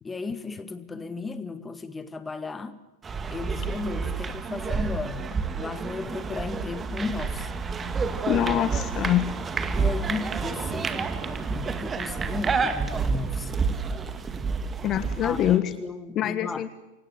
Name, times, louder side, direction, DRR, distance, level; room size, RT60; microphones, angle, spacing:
voice 1, 0.0-2.8 3.3-5.3 5.5-7.5 9.7-13.5 15.2-16.7, left 4 dB, 15° left, 12 dB, 1.9 m, -35 dB
sound 1, 3.0-15.6, right 5 dB, 20° right, 2.1 m, -29 dB
voice 2, 8.3-9.3 14.8-15.6 16.1-16.8, left 12 dB, 30° left, 12 dB, 1.5 m, -24 dB
29.0 x 25.0 x 8.2 m, 1.1 s
figure-of-eight pair, 90°, 0 cm